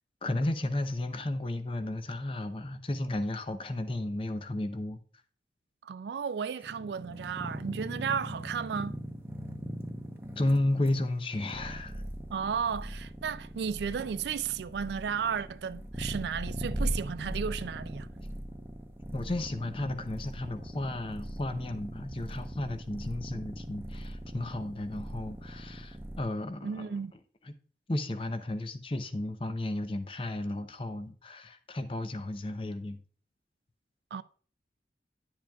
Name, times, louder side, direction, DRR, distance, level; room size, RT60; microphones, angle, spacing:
voice 1, 0.2-5.0 10.4-12.0 19.1-27.0 27.4-27.5 27.9-33.0, left 1 dB, 30° left, 0.6 m, -33 dB
voice 2, 5.8-9.0 12.3-18.1 26.6-27.1 34.1-34.2, right 7 dB, 75° right, 0.3 m, -34 dB
sound 1, 6.6-26.2, equal, 15° right, 0.7 m, -40 dB
10.5 x 7.4 x 2.3 m
head